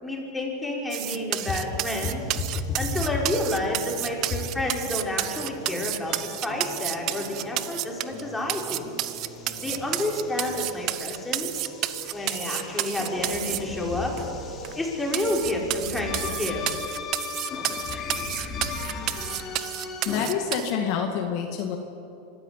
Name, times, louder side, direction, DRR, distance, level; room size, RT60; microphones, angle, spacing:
voice 1, 0.0-2.2 2.8-6.1 6.4-8.9 9.6-11.7 12.1-14.1 14.8-16.6, left 1 dB, 5° left, -1 dB, 4.9 m, -30 dB
sound 1, 0.9-8.2 8.5-13.6 14.2-14.3 14.6-14.7 15.1-20.7, right 15 dB, 45° right, 0.8 m, -31 dB
sound 2, 1.4-20.3, left 4 dB, 30° left, 3.5 m, -37 dB
sound 3, 4.4-15.1, right 1 dB, 70° right, 6.9 m, -44 dB
voice 2, 20.0-21.8, left 7 dB, 55° left, 3 dB, 2.2 m, -27 dB
25.0 x 13.5 x 8.4 m, 2.8 s
supercardioid pair, 125°, 0 cm